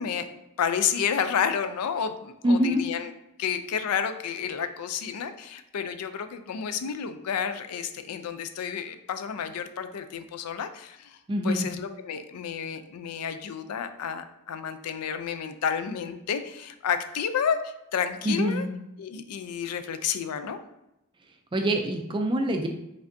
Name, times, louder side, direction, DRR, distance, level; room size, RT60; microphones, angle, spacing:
voice 1, 0.0-3.1 3.4-18.7 19.0-20.6, left 7 dB, 90° left, 9 dB, 0.4 m, -30 dB
voice 2, 2.4-2.8 11.3-11.7 18.2-18.7 21.5-22.7, equal, 20° right, 4 dB, 0.3 m, -24 dB
5.0 x 3.3 x 2.6 m, 0.89 s
head